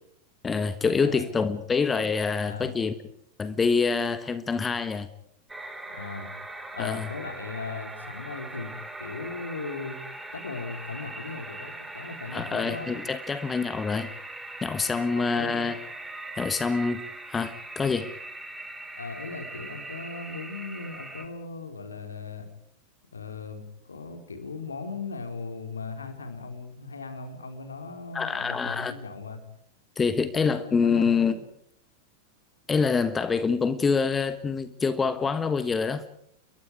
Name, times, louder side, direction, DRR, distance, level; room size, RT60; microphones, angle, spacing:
voice 1, 0.4-2.9 3.4-5.1 6.8-7.1 12.3-14.1 14.6-15.8 16.4-18.1 28.1-28.9 30.0-31.3 32.7-36.0, left 5 dB, 15° left, 12 dB, 1.4 m, -26 dB
sound 1, 5.5-21.3, right 2 dB, 5° right, 3.4 m, -41 dB
voice 2, 5.9-6.3 6.7-8.7 9.0-10.0 10.3-12.9 15.2-15.8 19.0-22.5 23.1-29.4 30.2-31.3, left 4 dB, 75° left, 6 dB, 4.1 m, -38 dB
29.5 x 22.5 x 4.8 m, 0.73 s
figure-of-eight pair, 90°, 0 cm